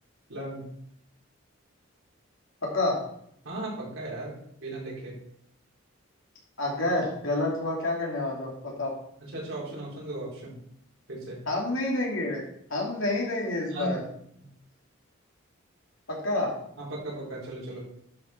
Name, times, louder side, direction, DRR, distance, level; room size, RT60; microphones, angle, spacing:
voice 1, 0.3-0.7 3.4-5.2 9.2-10.6 11.1-11.4 13.7-14.0 14.3-14.4 16.8-17.9, right 1 dB, 80° right, -6 dB, 4.6 m, -36 dB
voice 2, 2.6-3.0 6.6-8.9 11.5-12.4 12.7-14.0 16.1-16.5, left 2 dB, 75° left, -2 dB, 2.9 m, -28 dB
11.5 x 5.8 x 4.6 m, 0.72 s
head